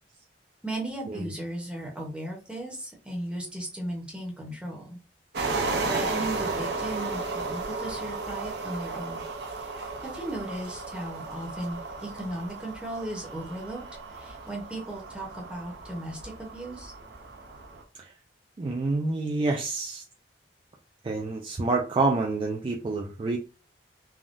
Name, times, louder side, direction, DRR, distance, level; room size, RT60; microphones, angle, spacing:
voice 1, 0.6-5.0 5.8-9.2 9.5-9.7 10.0-13.8 14.1-16.9, right 1 dB, 5° right, -2 dB, 0.7 m, -36 dB
sound 1, 5.3-17.8, right 3 dB, 65° right, 0.6 m, -34 dB
voice 2, 18.6-20.0 21.0-23.4, right 3 dB, 30° right, -1 dB, 0.3 m, -28 dB
3.5 x 2.2 x 2.5 m, 0.33 s
head